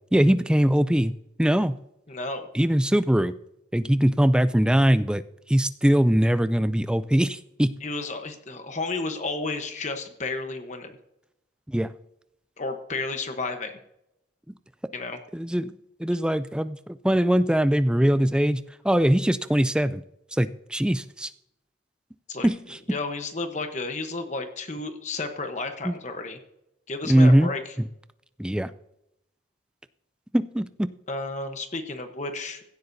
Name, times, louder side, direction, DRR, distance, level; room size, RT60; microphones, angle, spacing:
voice 1, 0.1-1.1 1.4-1.7 2.5-3.3 3.7-5.2 5.5-7.7 11.7-11.9 15.3-15.7 16.0-20.0 20.3-21.3 22.4-22.8 25.8-25.9 27.1-27.5 28.4-28.7 30.3-30.9, equal, 5° right, 13 dB, 0.3 m, -21 dB
voice 2, 2.1-2.5 7.8-11.0 12.6-13.7 14.9-15.2 22.3-22.5 22.9-26.4 26.9-27.7 31.1-32.6, left 3 dB, 40° left, 6 dB, 1.0 m, -32 dB
16.5 x 12.0 x 2.7 m, 0.82 s
head